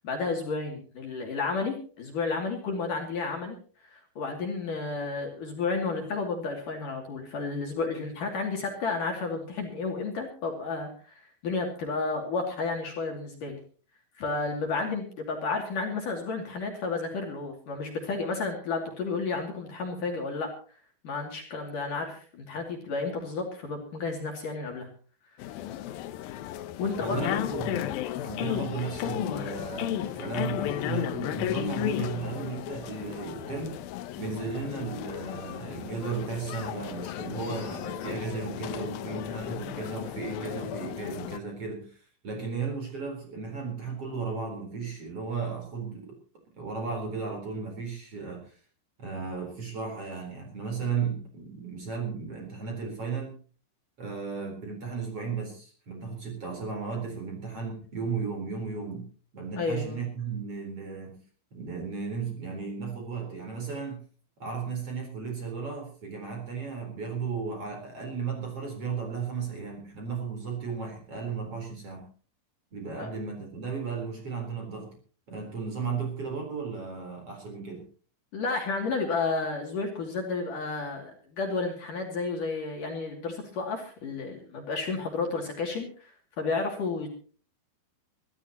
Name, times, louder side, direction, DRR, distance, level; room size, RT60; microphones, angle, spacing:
voice 1, 0.0-3.6 3.8-13.6 14.2-20.5 21.0-24.9 26.8-27.5 59.6-60.0 73.0-73.1 78.3-86.1 86.4-87.1, left 4 dB, 50° left, 2 dB, 3.8 m, -32 dB
sound 1, 25.4-41.4, left 13 dB, 85° left, 2.1 m, -34 dB
voice 2, 27.0-27.9 28.2-33.8 34.2-46.2 46.6-48.6 49.0-53.4 54.0-59.1 59.3-61.2 61.5-64.0 64.4-72.1 72.7-74.9 75.3-77.8, right 5 dB, 30° right, 2 dB, 4.7 m, -35 dB
24.0 x 14.5 x 3.0 m, 0.41 s
omnidirectional pair, 5.4 m